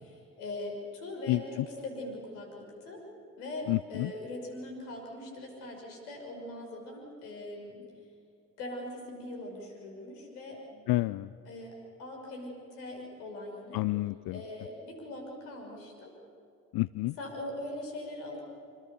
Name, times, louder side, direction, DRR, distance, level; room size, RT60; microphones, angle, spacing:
voice 1, 0.0-3.0 3.4-7.9 8.6-10.9 11.5-13.8 14.3-16.1 17.2-18.4, left 1 dB, 75° left, 1 dB, 6.2 m, -41 dB
voice 2, 3.7-4.1 10.9-11.3 13.7-14.4 16.7-17.1, left 19 dB, 50° left, 17 dB, 0.6 m, -29 dB
27.0 x 26.0 x 7.1 m, 2.6 s
figure-of-eight pair, 45°, 47 cm